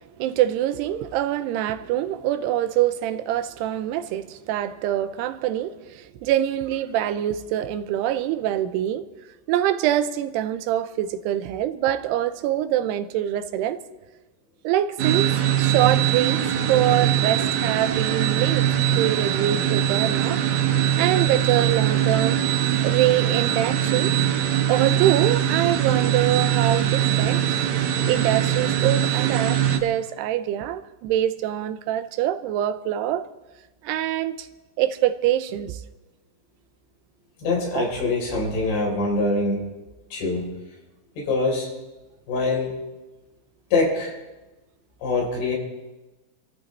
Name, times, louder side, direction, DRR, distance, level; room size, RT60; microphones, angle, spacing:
voice 1, 0.2-9.1 9.5-13.8 14.6-15.3 15.6-18.7 18.9-20.4 21.0-22.4 22.8-24.1 24.7-27.4 28.0-33.3 33.8-34.5 34.8-35.8 37.7-37.9, right 12 dB, 90° right, 2.8 m, -24 dB
sound 1, 15.0-29.8, right 10 dB, 70° right, 2.5 m, -22 dB
voice 2, 37.4-39.6 40.1-40.5 41.2-41.7 42.3-42.7 43.7-44.1 45.0-45.6, left 3 dB, 80° left, 6.2 m, -24 dB
29.0 x 14.0 x 3.3 m
omnidirectional pair, 4.6 m